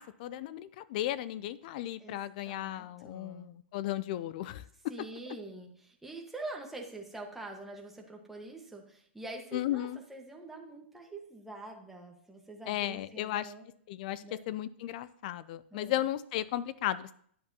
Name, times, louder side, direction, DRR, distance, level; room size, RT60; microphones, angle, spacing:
voice 1, 0.0-4.6 9.5-10.0 12.7-13.5 13.9-17.1, left 13 dB, 45° left, 17 dB, 0.4 m, -35 dB
voice 2, 2.0-3.5 4.9-13.6 14.2-14.4 15.7-15.9, right 2 dB, 5° right, 0 dB, 1.3 m, -45 dB
10.5 x 9.4 x 2.8 m, 0.62 s
hypercardioid pair, 150°, 6 cm